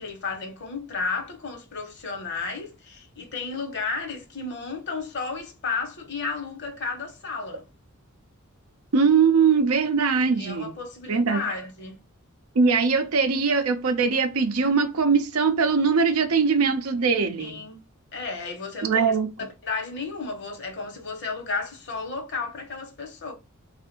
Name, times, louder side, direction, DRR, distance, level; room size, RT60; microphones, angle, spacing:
voice 1, 0.0-7.6 10.2-12.0 17.4-17.8 18.1-19.2 19.6-23.3, left 4 dB, 55° left, 1.1 m, -33 dB
voice 2, 8.9-10.7 11.1-11.4 12.6-17.6 18.8-19.3, right 5 dB, 80° right, 0.6 m, -21 dB
3.3 x 2.4 x 4.3 m
head